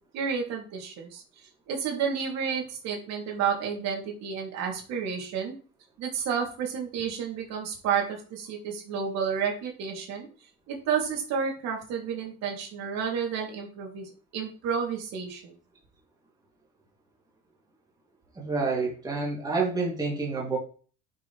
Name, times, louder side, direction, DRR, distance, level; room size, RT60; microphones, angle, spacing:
voice 1, 0.1-5.5 6.0-10.3 10.7-15.5, right 6 dB, 60° right, 0 dB, 3.2 m, -31 dB
voice 2, 18.4-20.6, right 4 dB, 15° right, -3 dB, 3.0 m, -28 dB
11.5 x 5.9 x 3.4 m, 0.39 s
cardioid pair, 145°, 29 cm